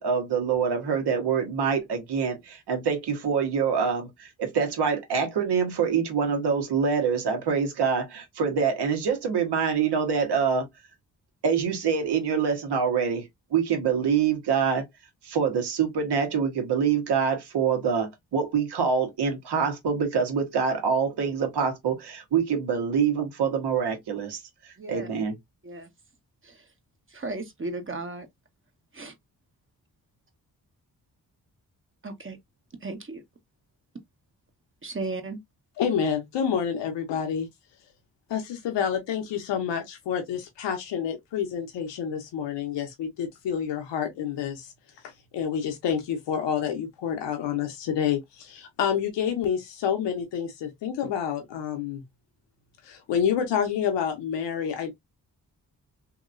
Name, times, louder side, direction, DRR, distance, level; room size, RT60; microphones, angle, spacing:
voice 1, 0.0-10.7 11.4-14.9 15.2-25.4, right 6 dB, 75° right, 1.3 m, -25 dB
voice 2, 24.8-25.1 25.6-25.9 26.4-26.7 27.1-28.3 28.9-29.1 32.0-32.4 32.8-33.2 34.8-35.4, right 2 dB, 30° right, 1.1 m, -35 dB
voice 3, 35.8-37.5 38.3-44.7 45.0-52.0 52.8-54.9, left 8 dB, 90° left, 0.8 m, -28 dB
2.9 x 2.8 x 2.5 m
supercardioid pair, 50°, 41 cm